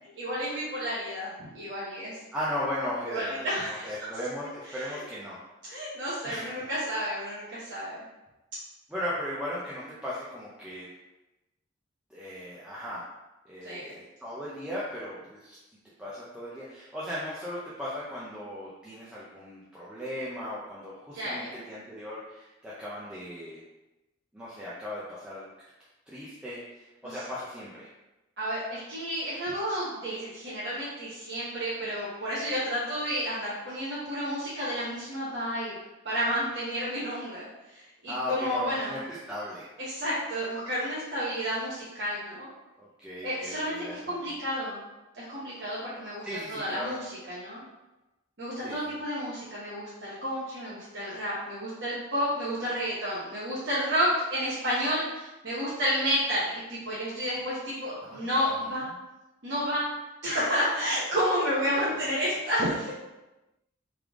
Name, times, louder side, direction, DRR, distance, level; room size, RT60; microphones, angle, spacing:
voice 1, 0.0-2.2 3.1-3.9 4.7-5.0 5.7-8.0 13.6-13.9 21.1-21.6 27.0-27.2 28.4-35.8 36.0-39.0 39.8-42.5 43.2-44.8 45.1-47.6 48.4-58.9 59.4-59.9 60.2-62.9, equal, 55° right, -9 dB, 1.0 m, -31 dB
voice 2, 2.3-5.4 6.2-6.6 8.9-10.9 12.1-13.0 13.5-15.6 16.0-23.6 24.3-25.4 26.1-27.9 38.1-39.7 42.8-43.9 44.3-44.4 46.2-47.0 48.6-48.9 58.0-58.3, left 1 dB, 5° right, -8 dB, 0.5 m, -37 dB
3.5 x 3.3 x 3.5 m, 1.0 s
head